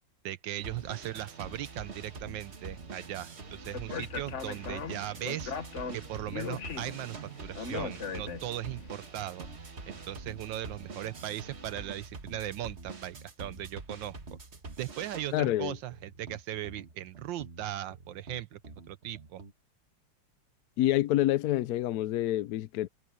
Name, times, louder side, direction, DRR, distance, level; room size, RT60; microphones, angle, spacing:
voice 1, 0.2-5.6 5.9-9.5 9.9-14.4 14.8-18.6 18.9-19.4, right 13 dB, 75° right, 1.3 m, -38 dB
sound 1, 0.6-19.5, right 3 dB, 35° right, 1.8 m, -45 dB
Speech, 3.7-8.8, left 6 dB, 45° left, 1.3 m, -39 dB
voice 2, 15.3-15.8 20.8-22.9, left 14 dB, 75° left, 0.9 m, -27 dB
omnidirectional pair, 2.1 m